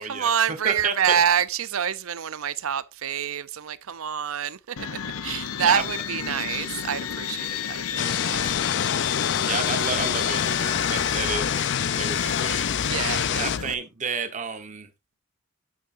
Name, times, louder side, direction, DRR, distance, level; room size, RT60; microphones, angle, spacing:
voice 1, 0.0-8.4 12.8-13.5, right 8 dB, 70° right, 0.6 m, -27 dB
voice 2, 0.6-1.1 5.6-5.8 6.3-6.6 9.4-12.7 13.3-14.9, right 5 dB, 35° right, 1.1 m, -31 dB
sound 1, 4.8-13.7, left 8 dB, 90° left, 0.7 m, -32 dB
sound 2, 8.0-13.6, left 8 dB, 55° left, 0.4 m, -26 dB
8.6 x 8.6 x 2.6 m
head